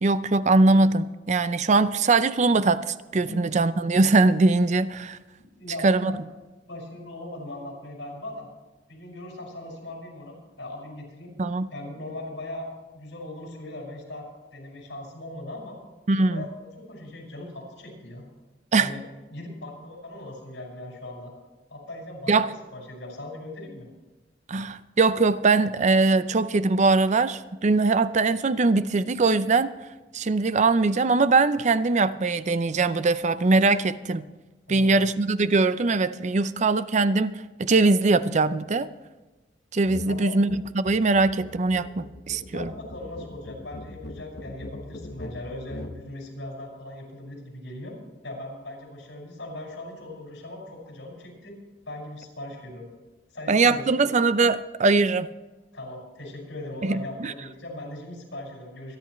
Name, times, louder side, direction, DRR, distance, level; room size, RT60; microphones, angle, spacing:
voice 1, 0.0-5.2 5.8-6.1 11.4-11.7 16.1-16.5 18.7-18.9 22.3-22.5 24.5-29.7 30.1-34.2 34.7-38.9 39.7-42.7 53.5-55.3 56.8-57.3, right 3 dB, 40° right, 14 dB, 0.5 m, -21 dB
voice 2, 5.6-6.2 6.7-8.5 8.9-11.3 11.7-15.8 16.1-18.2 18.8-21.3 21.7-23.9 34.7-35.0 40.0-40.4 42.4-47.9 48.2-51.6 51.9-52.9 53.3-54.1 55.7-59.0, left 1 dB, 80° left, 0 dB, 5.6 m, -39 dB
sound 1, 39.8-40.1 40.4-46.0, left 1 dB, 60° left, 1.2 m, -41 dB
25.0 x 10.5 x 3.2 m, 1.2 s
head